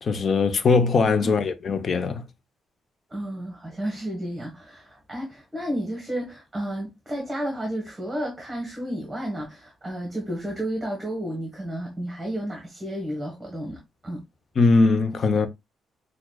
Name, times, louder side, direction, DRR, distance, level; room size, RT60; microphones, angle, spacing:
voice 1, 0.0-2.2 14.6-15.5, left 4 dB, 50° left, 0.7 m, -20 dB
voice 2, 3.1-14.2, right 1 dB, 20° right, 1.5 m, -32 dB
6.0 x 2.4 x 2.3 m
cardioid pair, 85°, 0 cm